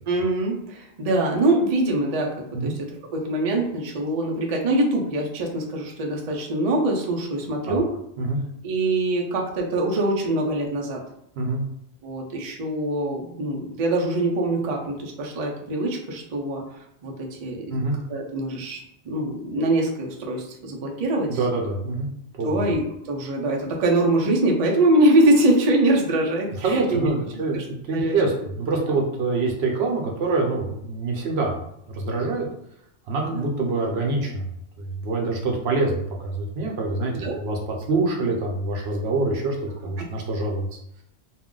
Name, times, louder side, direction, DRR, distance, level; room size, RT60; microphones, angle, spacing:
voice 1, 0.1-2.7 3.1-7.9 8.6-11.0 12.0-18.8 19.0-21.7 22.4-27.1 27.5-27.6 27.9-28.1 33.2-33.5 37.1-37.4, right 1 dB, 45° right, -1 dB, 0.5 m, -23 dB
voice 2, 21.3-22.1 22.4-22.6 26.6-27.6 27.9-31.5 31.9-32.5 33.1-34.4 34.8-37.6 37.9-39.6 39.8-40.7, right 3 dB, 75° right, 0 dB, 0.9 m, -25 dB
2.4 x 2.1 x 3.7 m, 0.75 s
omnidirectional pair, 1.1 m